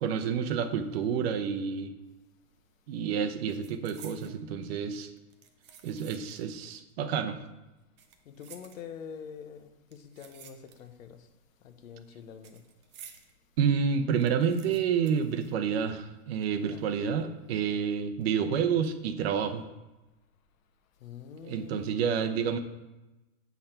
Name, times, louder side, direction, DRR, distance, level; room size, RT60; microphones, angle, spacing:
voice 1, 0.0-1.9 2.9-5.1 5.8-7.4 13.6-19.6 21.4-22.6, right 7 dB, 50° right, 0.7 m, -29 dB
sound 1, 2.4-2.7 3.0-4.4 5.2-6.6 6.9-7.0 7.8-9.2 9.9-11.1 11.4-13.3 13.7-13.8 14.0-16.1 16.4-16.5 17.2-17.6 18.0-18.2, right 8 dB, 25° right, 0.4 m, -53 dB
voice 2, 8.2-11.3 11.6-12.6 16.5-16.8 21.0-22.1, left 7 dB, 80° left, 1.1 m, -46 dB
8.1 x 5.9 x 4.4 m
supercardioid pair, 155°, 40 cm